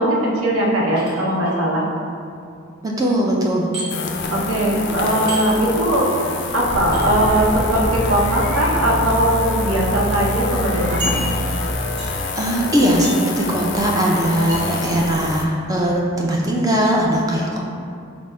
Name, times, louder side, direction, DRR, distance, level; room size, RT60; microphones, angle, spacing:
voice 1, 0.0-1.9 4.3-6.2 6.5-11.1, right 1 dB, 80° right, -3 dB, 0.7 m, -19 dB
sound 1, 1.0-1.6 3.7-3.9 5.3-5.4 6.9-7.0 8.4-8.6 9.4-9.5 9.8-9.9 11.0-11.6 12.0-12.3 13.0-13.3 14.5-14.7, equal, 55° right, 1.2 m, -30 dB
voice 2, 2.8-3.7 12.4-17.6, right 1 dB, 15° right, -2 dB, 0.4 m, -19 dB
sound 2, 3.9-15.4, left 4 dB, 55° left, 0.4 m, -28 dB
sound 3, 6.7-11.7, equal, 10° left, 0.7 m, -25 dB
4.9 x 2.0 x 4.2 m, 2.4 s
head